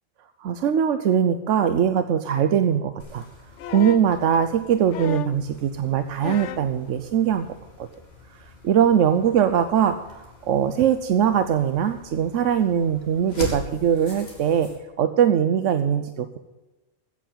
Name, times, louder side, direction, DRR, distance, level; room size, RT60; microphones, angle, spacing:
voice 1, 0.4-3.2 3.7-7.5 7.8-7.9 8.6-14.7 15.0-16.4, right 8 dB, 90° right, 9 dB, 1.1 m, -21 dB
sound 1, 3.0-14.8, left 2 dB, 55° left, 3.4 m, -42 dB
sound 2, 3.6-4.1 4.9-5.5 6.2-6.7 7.9-8.0, left 10 dB, 80° left, 0.9 m, -33 dB
15.5 x 7.0 x 7.5 m, 1.1 s
omnidirectional pair, 1.2 m